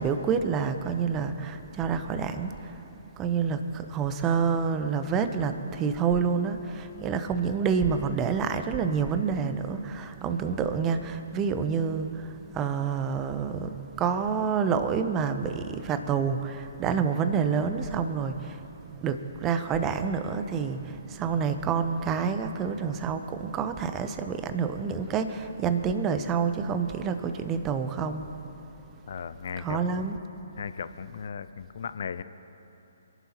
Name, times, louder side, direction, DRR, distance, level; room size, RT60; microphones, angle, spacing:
voice 1, 0.0-2.8 3.2-18.6 19.0-28.3 29.6-30.2, right 6 dB, 20° right, 9 dB, 0.8 m, -28 dB
voice 2, 29.1-30.1 30.6-32.2, left 6 dB, 55° left, 13 dB, 0.5 m, -36 dB
27.0 x 11.0 x 3.0 m, 2.9 s
figure-of-eight pair, 130°, 0 cm